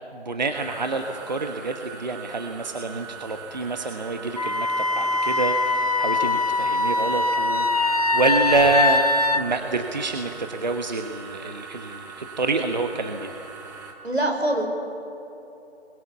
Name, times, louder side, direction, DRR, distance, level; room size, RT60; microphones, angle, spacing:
voice 1, 0.1-9.0 9.3-13.3, right 3 dB, 40° right, 5 dB, 1.3 m, -27 dB
sound 1, 0.5-13.9, right 5 dB, 15° right, 1.7 m, -41 dB
Wind instrument woodwind instrument, 4.4-9.4, left 2 dB, 35° left, 0.6 m, -22 dB
sound 2, 7.9-9.8, right 1 dB, ahead, 2.7 m, -45 dB
voice 2, 14.0-14.6, right 1 dB, 75° right, 2 dB, 5.3 m, -23 dB
28.5 x 22.0 x 7.1 m, 3.0 s
figure-of-eight pair, 155°, 33 cm